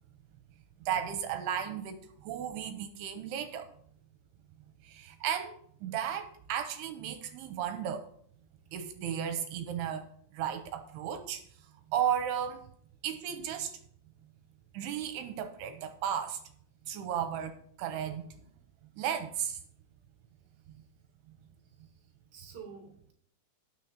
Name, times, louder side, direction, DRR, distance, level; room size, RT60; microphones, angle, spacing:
voice 1, 0.8-3.7 4.8-5.6 5.8-8.1 8.7-10.1 10.3-11.4 11.9-12.6 13.0-13.7 14.7-16.4 16.9-18.4 19.0-19.6, right 9 dB, 85° right, 8 dB, 2.7 m, -34 dB
voice 2, 20.5-20.9 21.5-23.1, right 6 dB, 35° right, -1 dB, 2.1 m, -52 dB
18.0 x 6.3 x 2.8 m, 0.62 s
omnidirectional pair, 4.9 m